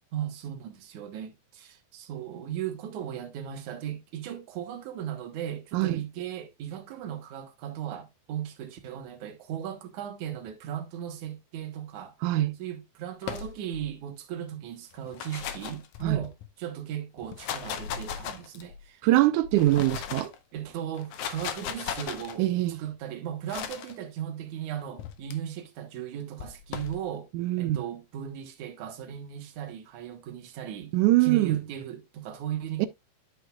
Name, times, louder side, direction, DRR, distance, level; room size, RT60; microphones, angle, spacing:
voice 1, 0.1-12.1 12.6-19.0 19.6-19.7 20.5-22.5 22.8-27.3 27.6-31.0 31.2-32.9, right 10 dB, 65° right, 2.3 m, -37 dB
voice 2, 12.2-12.6 16.0-16.2 19.0-20.3 22.4-22.8 27.3-27.8 30.9-31.6 32.8-32.9, right 16 dB, 90° right, 1.7 m, -23 dB
sound 1, 13.2-13.9 14.9-16.5 17.2-18.8 19.4-20.4 20.9-22.4 23.5-23.9 25.0-25.3 26.4-27.0, left 8 dB, 70° left, 1.8 m, -37 dB
11.0 x 6.3 x 2.3 m
omnidirectional pair, 4.3 m